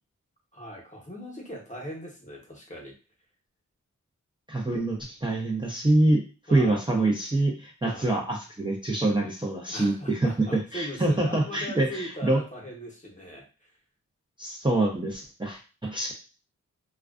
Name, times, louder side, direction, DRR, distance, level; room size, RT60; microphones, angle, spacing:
voice 1, 0.5-2.9 6.5-6.8 7.8-8.2 9.7-13.7, equal, 25° left, 0 dB, 0.8 m, -40 dB
voice 2, 4.5-6.2 6.5-12.4 14.4-16.1, right 2 dB, 15° right, -3 dB, 0.5 m, -25 dB
2.4 x 2.2 x 2.4 m, 0.34 s
cardioid pair, 55°, 32 cm